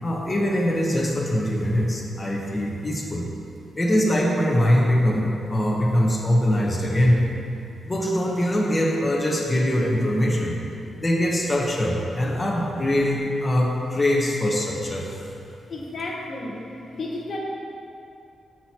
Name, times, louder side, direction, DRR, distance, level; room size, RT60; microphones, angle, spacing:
voice 1, 0.0-3.3 3.8-7.2 7.8-10.5 11.0-15.3, equal, 15° left, -3 dB, 1.0 m, -22 dB
voice 2, 15.7-16.6 16.9-17.4, left 2 dB, 50° left, -1 dB, 0.9 m, -32 dB
12.5 x 6.1 x 2.9 m, 2.6 s
wide cardioid pair, 145°, 0 cm